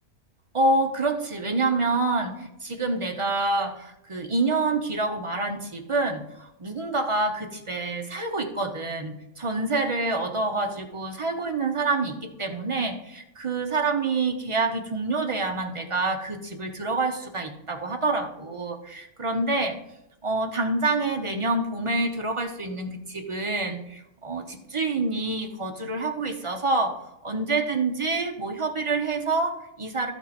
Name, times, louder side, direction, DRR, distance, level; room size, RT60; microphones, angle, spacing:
voice 1, 0.5-19.8 20.2-27.0 27.2-30.1, right 3 dB, 35° right, 4 dB, 0.5 m, -27 dB
12.5 x 4.5 x 4.1 m, 0.87 s
omnidirectional pair, 1.6 m